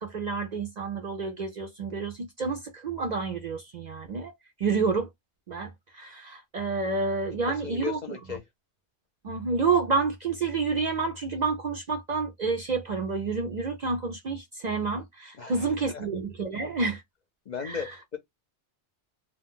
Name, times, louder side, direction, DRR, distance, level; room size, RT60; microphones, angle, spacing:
voice 1, 0.0-4.3 4.6-5.1 5.5-8.0 9.2-17.0 17.6-17.8, right 4 dB, 50° right, 0.5 m, -29 dB
voice 2, 7.5-8.4 15.4-16.1 17.5-18.2, left 6 dB, 50° left, 0.6 m, -36 dB
2.4 x 2.1 x 3.7 m
omnidirectional pair, 1.2 m